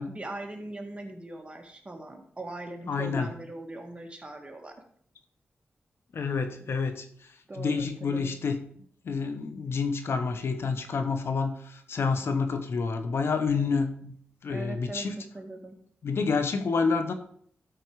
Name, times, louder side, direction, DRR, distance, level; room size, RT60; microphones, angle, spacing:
voice 1, 0.0-4.7 7.5-8.3 14.5-15.1 15.3-15.8, right 2 dB, 25° right, 3 dB, 2.0 m, -40 dB
voice 2, 2.9-3.3 6.1-8.6 9.0-14.1 14.4-15.2 16.0-17.1, left 4 dB, 75° left, 8 dB, 1.1 m, -28 dB
12.5 x 4.6 x 4.8 m, 0.62 s
cardioid pair, 70°, 4 cm